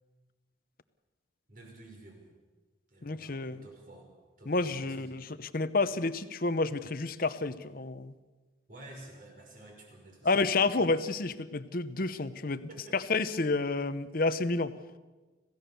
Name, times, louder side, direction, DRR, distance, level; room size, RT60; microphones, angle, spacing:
voice 1, 1.5-2.3 2.9-4.1 4.4-5.2 8.7-10.9 12.7-13.0, right 1 dB, 45° right, 1 dB, 5.7 m, -51 dB
voice 2, 3.0-3.6 4.5-5.2 5.5-8.1 10.2-14.7, left 3 dB, 45° left, 13 dB, 0.9 m, -30 dB
26.5 x 16.0 x 7.0 m, 1.3 s
head